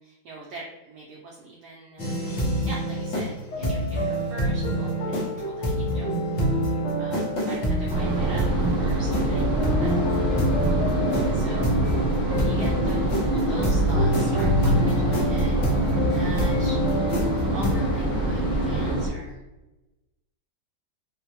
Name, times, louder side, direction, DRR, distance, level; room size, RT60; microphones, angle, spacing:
voice 1, 0.0-2.2 2.7-6.1 7.0-8.4 8.8-10.5 11.2-11.8 12.3-15.6 16.0-16.8 17.5-19.4, right 3 dB, 75° right, -2 dB, 0.9 m, -42 dB
sound 1, 2.0-17.7, equal, 60° left, 0.9 m, -26 dB
sound 2, 2.2-19.0, left 1 dB, 80° left, 1.4 m, -40 dB
sound 3, 7.9-19.1, right 2 dB, 5° right, 0.7 m, -25 dB
3.6 x 2.0 x 2.8 m, 1.1 s
omnidirectional pair, 2.2 m